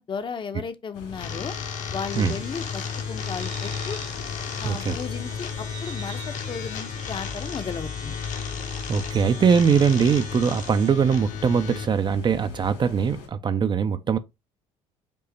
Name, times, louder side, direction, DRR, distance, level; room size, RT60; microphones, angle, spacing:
voice 1, 0.0-1.6 1.9-4.0 4.6-8.2, left 6 dB, 35° left, 0.7 m, -35 dB
sound 1, 0.9-13.3, left 6 dB, 75° left, 2.5 m, -40 dB
sound 2, 1.1-11.9, left 6 dB, 60° left, 0.9 m, -34 dB
sound 3, 2.1-10.9, right 8 dB, 55° right, 1.1 m, -46 dB
voice 2, 4.6-5.0 8.9-14.2, right 6 dB, 30° right, 0.4 m, -22 dB
5.3 x 2.1 x 4.0 m
supercardioid pair, 85°, 15 cm